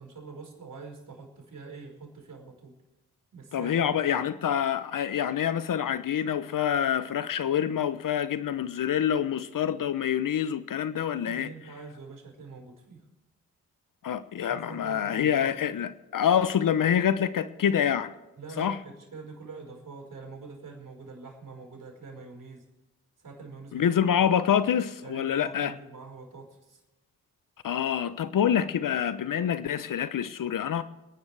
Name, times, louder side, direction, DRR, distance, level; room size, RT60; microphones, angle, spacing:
voice 1, 0.0-2.8 3.3-4.2 11.1-13.0 14.5-15.7 18.4-22.7 23.2-23.9 25.0-26.8, right 4 dB, 50° right, 5.1 m, -45 dB
voice 2, 3.5-11.5 14.0-18.1 18.6-18.8 23.7-25.7 27.6-30.8, left 9 dB, 55° left, 0.9 m, -26 dB
27.5 x 10.5 x 3.4 m
supercardioid pair, 50°, 39 cm